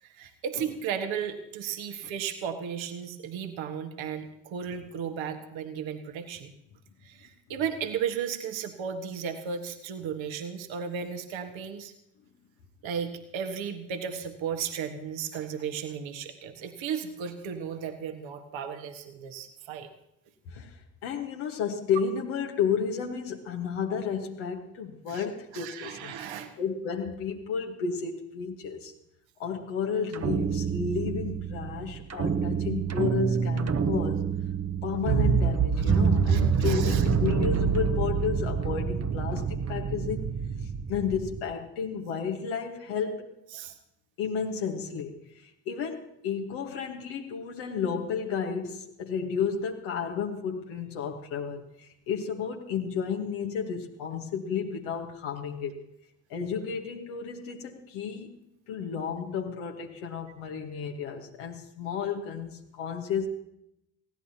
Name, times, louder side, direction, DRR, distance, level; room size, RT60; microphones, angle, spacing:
voice 1, 0.0-6.5 7.0-11.9 12.8-19.9 25.1-25.2 25.5-26.5 36.3-37.0 43.5-43.7, right 7 dB, 65° right, 6 dB, 1.7 m, -35 dB
voice 2, 20.5-26.2 26.6-28.9 29.4-34.2 34.8-40.3 40.6-43.3 44.2-55.8 56.3-58.4 58.7-63.3, left 6 dB, 75° left, 1 dB, 1.5 m, -32 dB
sound 1, 30.1-41.4, right 6 dB, 30° right, 1.0 m, -27 dB
20.0 x 16.0 x 2.9 m, 0.80 s
hypercardioid pair, 45°, 50 cm